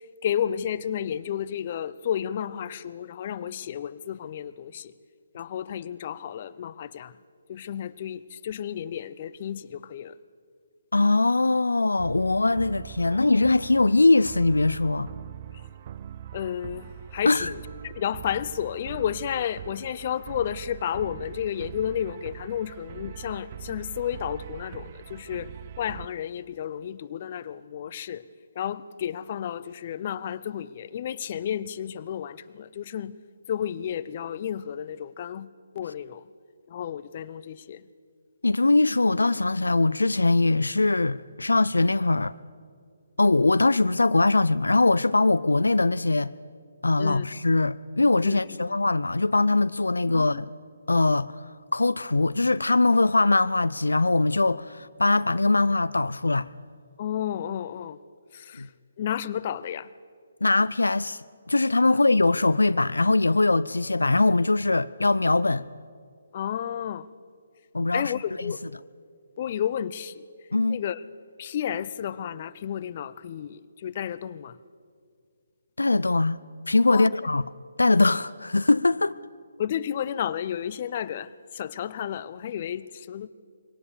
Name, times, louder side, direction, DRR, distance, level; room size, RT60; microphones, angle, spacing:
voice 1, 0.2-4.9 5.3-7.1 7.5-10.1 16.3-25.5 25.8-28.2 28.6-33.2 33.5-36.2 36.7-37.8 47.0-47.3 48.2-48.8 50.1-50.4 57.0-58.0 58.3-58.7 59.0-59.9 66.3-67.1 67.9-68.6 69.4-70.2 70.7-71.0 71.4-74.6 76.9-77.1 79.6-83.3, left 9 dB, 40° left, 0.6 m, -32 dB
voice 2, 10.9-15.1 17.3-17.5 38.4-42.3 43.2-46.3 46.8-50.5 50.9-51.3 51.7-56.5 58.6-58.7 60.4-61.2 61.5-65.6 67.7-68.5 70.5-70.8 75.8-76.4 76.7-77.4 77.8-79.1, left 2 dB, 85° left, 0.4 m, -22 dB
sound 1, 12.0-26.1, right 10 dB, 40° right, 0.5 m, -42 dB
22.0 x 18.0 x 6.9 m
figure-of-eight pair, 145°, 0 cm